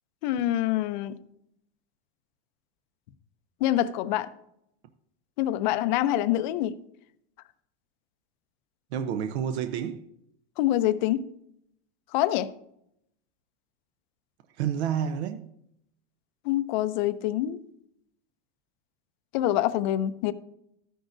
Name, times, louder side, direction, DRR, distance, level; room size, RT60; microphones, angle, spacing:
voice 1, 0.2-1.1 3.6-4.3 5.4-6.8 10.6-11.3 12.1-12.5 16.4-17.6 19.3-20.3, left 13 dB, 40° left, 0.5 m, -25 dB
voice 2, 8.9-10.1 14.6-15.5, right 8 dB, 65° right, 0.7 m, -29 dB
13.0 x 10.0 x 2.6 m
supercardioid pair, 165°, 35 cm